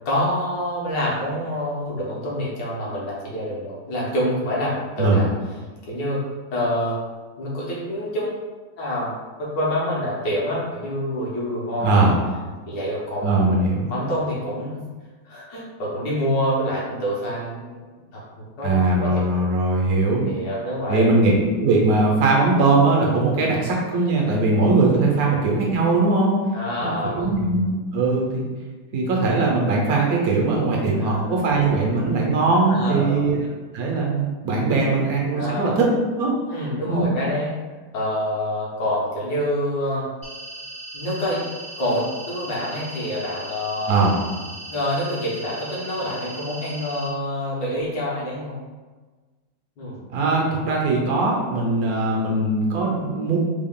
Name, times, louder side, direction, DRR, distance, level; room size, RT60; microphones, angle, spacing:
voice 1, 0.0-5.3 5.8-6.2 6.5-7.0 7.4-8.3 8.8-9.1 9.4-12.1 12.7-13.4 13.9-14.9 15.2-17.8 18.1-18.7 19.0-19.3 20.2-21.1 26.5-27.3 30.6-30.7 30.9-31.4 32.7-33.3 35.3-35.7 36.5-37.6 37.9-40.0 40.9-41.4 41.8-43.9 44.7-48.6 49.8-50.0 51.8-51.9, equal, 70° left, -6 dB, 1.6 m, -26 dB
voice 2, 11.8-12.1 13.2-13.9 18.6-20.2 20.9-21.3 21.6-26.4 26.8-28.5 28.9-33.4 33.7-35.9 36.1-36.3 36.9-37.0 43.9-44.2 50.1-53.4, right 3 dB, 60° right, -1 dB, 1.0 m, -20 dB
sound 1, 40.2-47.1, right 2 dB, 30° right, 0.4 m, -38 dB
3.7 x 2.3 x 3.6 m, 1.3 s
omnidirectional pair, 2.1 m